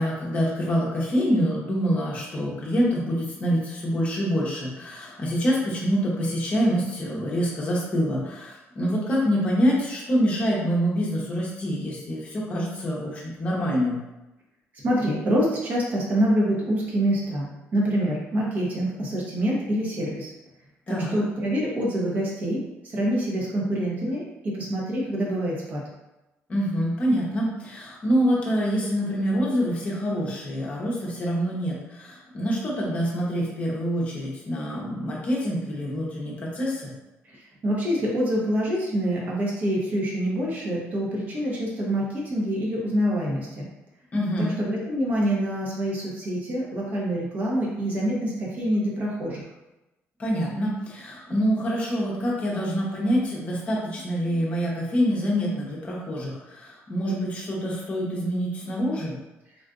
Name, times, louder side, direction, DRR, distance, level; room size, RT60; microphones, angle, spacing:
voice 1, 0.0-14.0 20.9-21.2 26.5-36.9 44.1-44.6 50.2-59.2, equal, 25° left, -4 dB, 0.8 m, -26 dB
voice 2, 14.8-20.3 20.9-25.9 37.6-43.7 44.4-49.4, equal, 35° right, -4 dB, 0.9 m, -26 dB
3.7 x 2.4 x 2.5 m, 1.0 s
cardioid pair, 170°, 5 cm